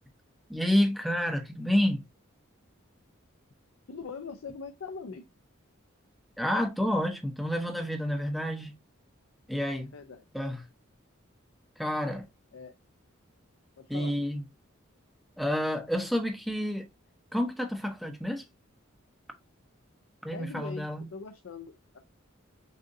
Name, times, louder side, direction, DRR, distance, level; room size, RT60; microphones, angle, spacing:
voice 1, 0.5-2.0 6.4-8.7 9.5-9.9 10.3-10.6 11.8-12.3 13.9-14.4 15.4-16.9 17.3-18.4 20.2-21.1, equal, ahead, 0.7 m, -29 dB
voice 2, 3.9-5.2 9.9-10.2 12.5-12.7 13.8-14.1 20.3-22.0, left 5 dB, 80° left, 0.6 m, -42 dB
6.4 x 2.6 x 2.6 m
head